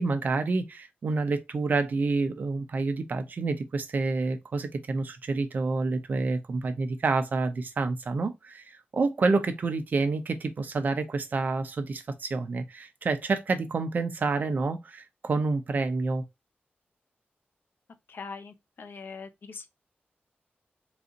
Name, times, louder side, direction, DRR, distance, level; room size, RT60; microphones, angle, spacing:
voice 1, 0.0-16.2, right 3 dB, 45° right, 0.6 m, -28 dB
voice 2, 18.1-19.7, left 5 dB, 60° left, 0.7 m, -42 dB
4.0 x 2.5 x 3.9 m
wide cardioid pair, 160°, 4 cm